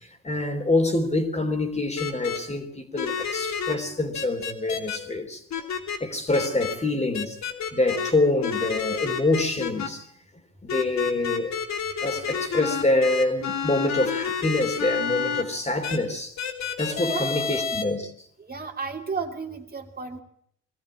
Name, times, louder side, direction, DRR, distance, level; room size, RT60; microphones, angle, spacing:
voice 1, 0.2-5.7 6.0-7.4 7.7-10.0 10.6-11.5 12.0-16.4 16.8-18.1, left 2 dB, 20° left, 3.5 m, -26 dB
sound 1, 2.0-2.4 3.0-3.7 4.1-5.0 5.5-6.0 6.3-6.7 7.1-8.1 8.4-9.9 10.7-15.4 15.8-16.0 16.4-17.8, left 6 dB, 65° left, 3.0 m, -29 dB
voice 2, 17.0-17.6 18.4-20.2, right 5 dB, 30° right, 2.8 m, -33 dB
22.0 x 14.0 x 8.9 m
cardioid pair, 90°, 30 cm